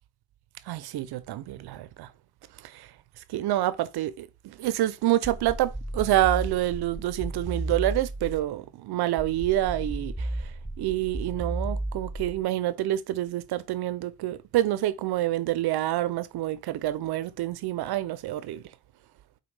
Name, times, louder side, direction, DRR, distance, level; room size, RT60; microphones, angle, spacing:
voice 1, 0.7-2.1 2.7-2.9 3.3-10.3 10.8-18.6, right 14 dB, 60° right, 0.5 m, -27 dB
sound 1, 5.2-8.5 9.2-12.5, right 1 dB, ahead, 0.6 m, -34 dB
5.0 x 2.3 x 3.2 m
hypercardioid pair, 50°, 45 cm